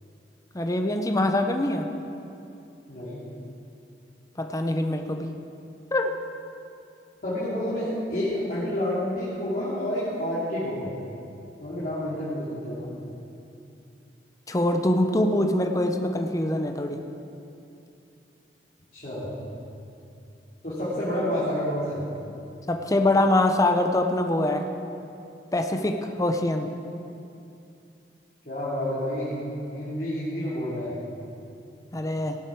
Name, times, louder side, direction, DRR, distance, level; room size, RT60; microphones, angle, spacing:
voice 1, 0.5-1.9 4.4-5.3 5.9-6.1 14.5-17.0 22.7-24.6 25.5-26.7 31.9-32.4, left 1 dB, 20° left, 5 dB, 0.7 m, -24 dB
voice 2, 2.9-3.2 7.2-10.9 11.6-12.9 18.9-19.3 20.6-22.0 28.4-30.9, left 1 dB, 50° left, -11 dB, 3.0 m, -29 dB
17.5 x 8.0 x 4.7 m, 2.7 s
head